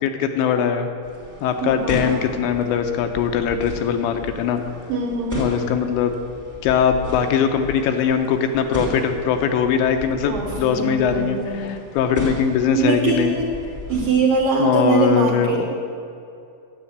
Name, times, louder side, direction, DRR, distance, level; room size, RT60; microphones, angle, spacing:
voice 1, 0.0-0.9 1.4-4.6 5.4-6.1 6.6-13.4 14.6-15.7, left 7 dB, 80° left, 6 dB, 3.0 m, -21 dB
sound 1, 1.0-14.4, equal, 15° left, 0.6 m, -35 dB
voice 2, 1.6-2.2 4.9-5.5 10.2-11.8 12.8-13.5 13.9-15.7, right 4 dB, 75° right, 0 dB, 2.2 m, -22 dB
10.0 x 8.0 x 9.5 m, 2.5 s
omnidirectional pair, 5.3 m